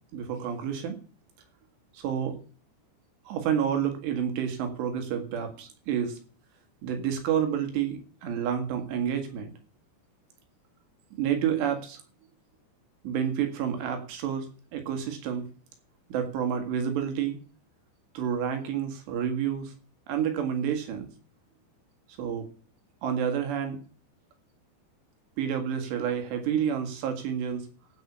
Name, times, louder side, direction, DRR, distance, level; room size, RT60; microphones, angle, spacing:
voice 1, 0.1-1.0 1.9-2.4 3.3-6.2 6.8-9.5 11.1-12.0 13.0-15.4 16.1-17.4 18.1-19.7 20.1-21.1 22.2-22.5 23.0-23.8 25.4-27.6, right 8 dB, 75° right, 6 dB, 4.1 m, -29 dB
15.5 x 5.6 x 7.1 m, 0.40 s
omnidirectional pair, 5.0 m